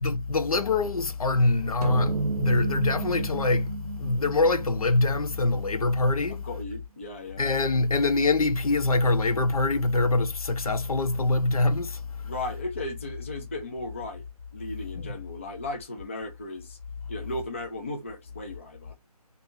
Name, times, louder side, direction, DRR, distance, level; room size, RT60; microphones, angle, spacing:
voice 1, 0.0-6.4 7.4-12.0 14.9-15.1, left 3 dB, 65° left, 0.8 m, -24 dB
sound 1, 1.8-6.4, right 4 dB, 75° right, 0.7 m, -33 dB
voice 2, 6.3-7.4 12.2-14.2 14.5-16.8 17.1-18.9, left 2 dB, 20° left, 0.4 m, -36 dB
2.7 x 2.6 x 4.3 m
figure-of-eight pair, 155°, 20 cm